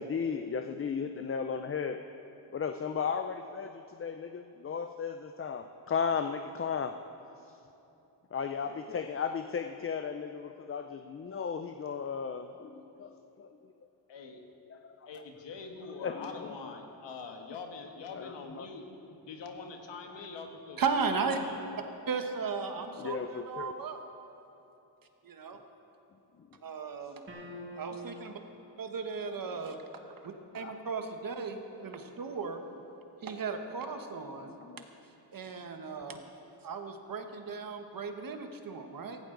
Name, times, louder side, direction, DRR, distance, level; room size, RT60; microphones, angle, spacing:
voice 1, 0.0-2.0 2.5-6.9 7.4-7.6 8.3-13.7 14.7-15.2 15.9-16.8 18.1-18.7 20.1-20.3 23.0-23.7 26.4-26.5 27.0-27.1 30.5-30.7 34.4-34.9, left 6 dB, 30° left, 7 dB, 0.5 m, -36 dB
voice 2, 14.1-14.4 15.1-18.9 19.2-21.6, left 4 dB, 85° left, 3 dB, 1.7 m, -44 dB
voice 3, 20.8-21.4 22.1-24.0 25.2-25.6 26.6-27.2 27.8-28.4 28.8-29.8 30.5-31.5 31.8-32.6 33.2-34.5 35.3-36.2 36.6-39.2, right 5 dB, 50° right, 5 dB, 1.3 m, -35 dB
sound 1, 27.3-28.3, equal, 30° right, 2.4 m, -44 dB
16.5 x 16.0 x 3.9 m, 2.9 s
cardioid pair, 90°, 42 cm